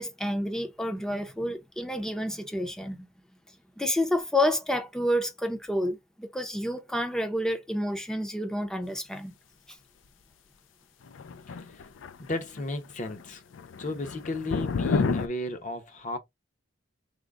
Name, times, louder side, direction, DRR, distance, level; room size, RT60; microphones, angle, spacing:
voice 1, 0.0-3.1 3.8-9.3, left 1 dB, 5° left, 0.5 m, -29 dB
sound 1, 11.1-12.6 12.9-13.2 13.5-15.3, left 4 dB, 75° left, 0.4 m, -30 dB
voice 2, 12.2-13.4 13.8-16.2, left 2 dB, 40° left, 0.7 m, -34 dB
3.7 x 2.1 x 3.5 m
head